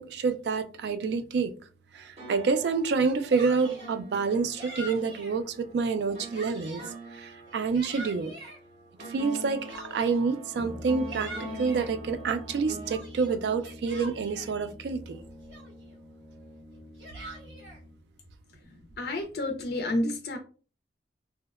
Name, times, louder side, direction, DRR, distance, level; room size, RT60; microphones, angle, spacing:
voice 1, 0.0-1.5 1.9-6.8 7.1-8.3 9.1-15.2, right 5 dB, 70° right, 10 dB, 0.3 m, -28 dB
sound 1, 1.9-13.0, right 1 dB, 35° right, 0.7 m, -44 dB
Yell, 2.9-3.9 4.6-5.4 5.9-7.0 7.5-8.6 9.3-10.3 10.8-11.9 12.4-14.5 15.1-15.2 15.5-16.0 16.7-17.8, right 1 dB, 85° right, 0.9 m, -44 dB
Brass instrument, 10.5-18.0, left 1 dB, 15° left, 0.6 m, -45 dB
voice 2, 19.0-20.4, left 1 dB, 60° left, 4 dB, 0.4 m, -30 dB
2.7 x 2.0 x 2.3 m, 0.38 s
head